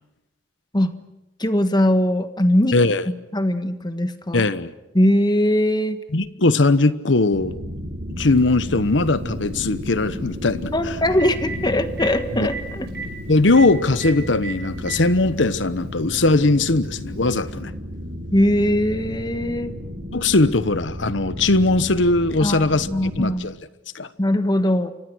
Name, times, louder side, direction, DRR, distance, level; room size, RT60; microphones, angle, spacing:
voice 1, 1.4-2.8 3.1-4.5 4.9-6.0 10.7-12.9 18.3-19.8 22.4-23.5 24.2-24.9, left 1 dB, 25° left, 1.4 m, -21 dB
voice 2, 2.7-3.1 4.3-4.7 6.1-7.5 8.2-11.0 12.3-12.5 13.3-17.7 20.1-22.9 23.2-23.5 23.9-24.1, left 2 dB, 80° left, 1.1 m, -19 dB
sound 1, 7.3-23.3, equal, 90° right, 7.2 m, -33 dB
Telephone, 8.4-8.5 10.6-10.7 11.0-11.6 12.0-12.1 12.5-12.6 12.9-13.1 13.5-13.7 14.0-14.1 14.4-15.0 16.0-16.1 17.5-17.6, right 6 dB, 60° right, 5.8 m, -32 dB
29.5 x 25.0 x 6.3 m
head